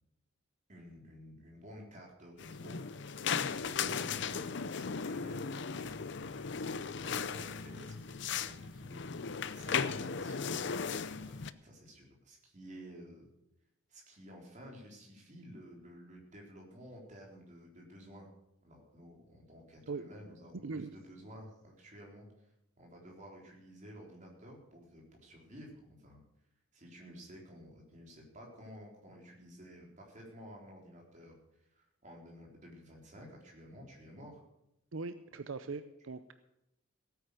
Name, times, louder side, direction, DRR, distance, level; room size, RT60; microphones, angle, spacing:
voice 1, 0.7-2.8 3.2-13.3 13.9-18.3 18.6-22.5 22.8-26.2 26.7-31.3 31.6-34.4, equal, 40° right, 0 dB, 4.0 m, -53 dB
sound 1, 2.4-11.5, left 6 dB, 60° left, 0.6 m, -37 dB
voice 2, 34.9-36.3, right 4 dB, 80° right, 11 dB, 0.7 m, -40 dB
16.0 x 9.4 x 6.7 m, 0.85 s
head